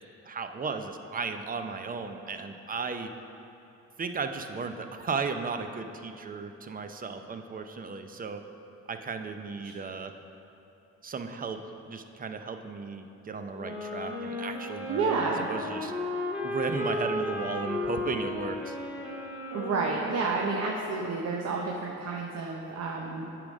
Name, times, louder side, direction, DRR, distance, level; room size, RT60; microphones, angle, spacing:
voice 1, 0.2-3.1 4.0-8.4 8.9-10.1 11.0-15.9 16.4-18.8, right 4 dB, 30° right, 7 dB, 0.5 m, -35 dB
sound 1, 13.5-21.4, left 2 dB, 5° right, 1.5 m, -35 dB
voice 2, 14.9-15.5 19.5-23.3, right 4 dB, 60° right, 0 dB, 0.8 m, -30 dB
8.8 x 5.0 x 5.2 m, 2.9 s
cardioid pair, 90°, 30 cm